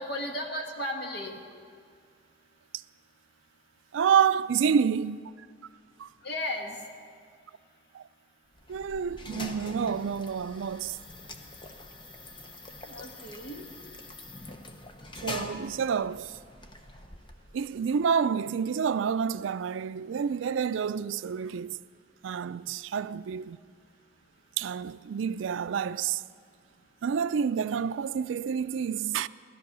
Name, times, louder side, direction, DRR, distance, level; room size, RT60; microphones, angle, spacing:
voice 1, 0.0-1.4 6.2-6.8 12.9-13.7, left 1 dB, 55° left, 1.7 m, -35 dB
voice 2, 3.9-5.5 6.0-6.1 7.9-8.1 8.7-11.0 15.2-16.4 17.5-21.8 22.2-23.6 24.6-26.2 27.0-29.3, right 7 dB, 85° right, 0.4 m, -28 dB
sound 1, 8.5-17.8, left 2 dB, 25° left, 0.8 m, -44 dB
16.5 x 13.5 x 6.1 m
head